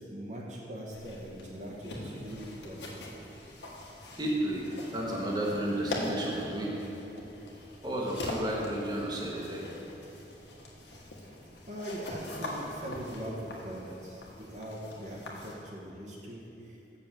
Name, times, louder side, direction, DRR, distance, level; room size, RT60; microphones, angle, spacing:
voice 1, 0.0-2.9 11.2-11.4 11.7-17.0, equal, 45° right, -4 dB, 1.2 m, -41 dB
sound 1, 0.9-15.5, left 1 dB, 80° left, 1.6 m, -42 dB
voice 2, 4.2-6.7 7.8-9.7, right 1 dB, 25° right, -3 dB, 1.3 m, -32 dB
7.5 x 6.7 x 7.5 m, 2.8 s
head